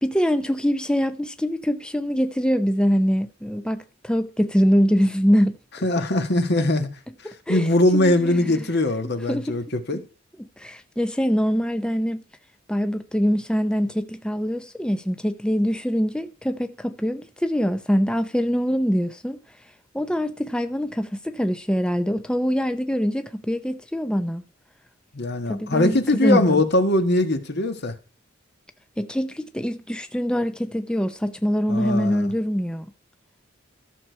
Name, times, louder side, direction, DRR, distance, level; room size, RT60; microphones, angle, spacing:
voice 1, 0.0-5.9 7.2-8.4 9.3-9.6 10.4-12.2 12.7-19.4 19.9-24.4 25.5-26.6 29.0-32.9, equal, 5° left, 0.5 m, -24 dB
voice 2, 5.8-6.9 7.2-10.0 25.1-27.9 31.7-32.3, left 1 dB, 60° left, 1.6 m, -21 dB
14.0 x 6.7 x 4.5 m
head